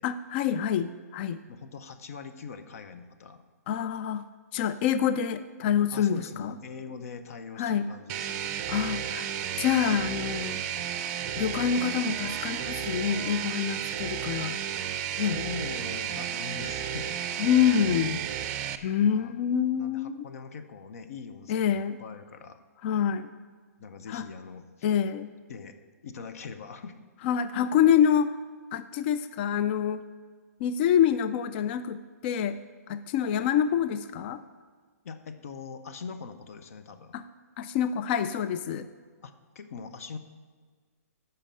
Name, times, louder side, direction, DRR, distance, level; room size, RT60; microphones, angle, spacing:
voice 1, 0.0-1.4 3.7-4.2 4.5-6.6 7.6-7.9 8.7-9.3 9.6-10.6 11.4-14.6 15.2-15.4 17.4-18.2 18.8-20.3 21.5-22.0 22.8-23.3 24.1-24.3 24.8-25.3 27.2-28.3 28.7-30.0 30.6-32.6 32.9-34.4 37.1-37.2 37.6-38.9, left 8 dB, 40° left, 12 dB, 0.4 m, -26 dB
voice 2, 1.5-3.4 5.9-8.6 15.1-17.2 19.0-19.3 19.8-22.6 23.8-24.7 25.5-25.8 26.0-27.0 35.0-37.2 39.2-40.2, left 5 dB, 60° left, 9 dB, 0.8 m, -42 dB
sound 1, 8.1-18.8, right 9 dB, 35° right, 0.6 m, -33 dB
8.8 x 5.7 x 7.6 m, 1.5 s
hypercardioid pair, 135°, 9 cm